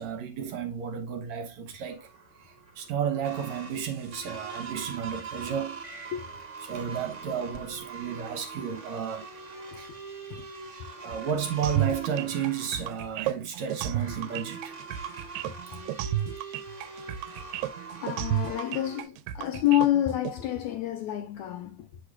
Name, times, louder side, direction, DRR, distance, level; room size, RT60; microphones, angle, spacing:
voice 1, 0.0-6.0 6.6-9.3 9.8-9.9 11.0-14.8, right 8 dB, 70° right, 1.9 m, -32 dB
sound 1, 1.9-19.0, right 4 dB, 35° right, 1.2 m, -43 dB
sound 2, 11.6-20.3, right 11 dB, 90° right, 2.3 m, -32 dB
voice 2, 18.0-21.9, left 13 dB, 75° left, 1.8 m, -28 dB
7.8 x 6.7 x 2.3 m
omnidirectional pair, 3.9 m